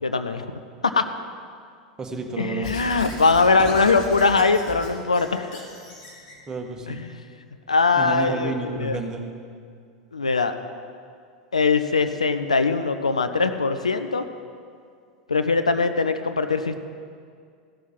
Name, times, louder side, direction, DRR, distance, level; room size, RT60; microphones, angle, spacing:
voice 1, 0.0-0.5 0.8-1.0 2.4-5.6 6.9-7.2 7.7-9.0 10.1-10.5 11.5-14.3 15.3-16.8, left 4 dB, 80° left, 9 dB, 0.5 m, -21 dB
voice 2, 2.0-2.7 6.5-7.0 7.9-9.3, right 3 dB, 20° right, 2 dB, 1.4 m, -31 dB
Squeak / Writing, 2.6-6.4, left 2 dB, 55° left, 2.3 m, -38 dB
15.0 x 6.2 x 5.9 m, 2.2 s
figure-of-eight pair, 85°, 4 cm